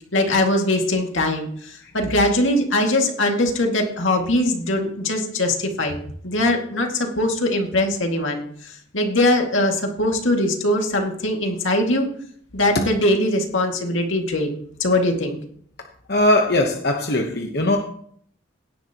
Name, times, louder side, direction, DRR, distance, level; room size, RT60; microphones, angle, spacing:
voice 1, 0.1-8.4 8.9-12.1 12.5-15.4, left 1 dB, 80° left, 2 dB, 2.2 m, -21 dB
voice 2, 16.1-17.8, left 1 dB, 55° left, 2 dB, 1.1 m, -19 dB
17.0 x 10.5 x 3.0 m, 0.63 s
head